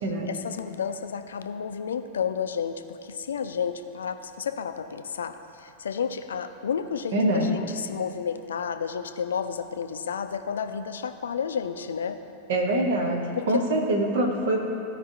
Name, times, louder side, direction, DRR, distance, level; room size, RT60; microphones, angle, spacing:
voice 1, 0.3-7.2 7.5-12.2 13.4-13.6, left 7 dB, 65° left, 8 dB, 0.4 m, -31 dB
voice 2, 7.1-7.5 12.5-14.6, right 1 dB, 60° right, 1 dB, 1.3 m, -24 dB
15.0 x 5.0 x 2.9 m, 2.7 s
figure-of-eight pair, 90°, 0 cm